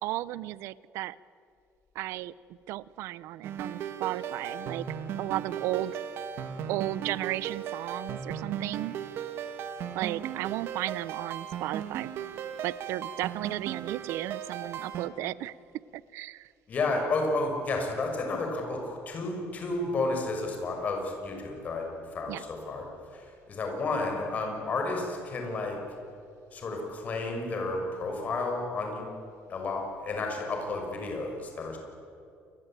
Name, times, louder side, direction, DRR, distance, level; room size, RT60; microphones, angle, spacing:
voice 1, 0.0-1.2 1.9-2.3 2.7-4.9 5.2-6.0 6.7-9.0 9.9-12.1 12.6-15.5 15.9-16.5 22.3-22.4, right 15 dB, 75° right, 19 dB, 0.7 m, -34 dB
sound 1, 3.4-15.1, right 8 dB, 55° right, 2.2 m, -37 dB
voice 2, 16.7-21.9 22.1-22.8 23.1-25.8 26.5-29.0 29.5-31.8, left 3 dB, 35° left, 2 dB, 6.2 m, -31 dB
28.5 x 22.0 x 9.0 m, 2.5 s
cardioid pair, 160°, 5 cm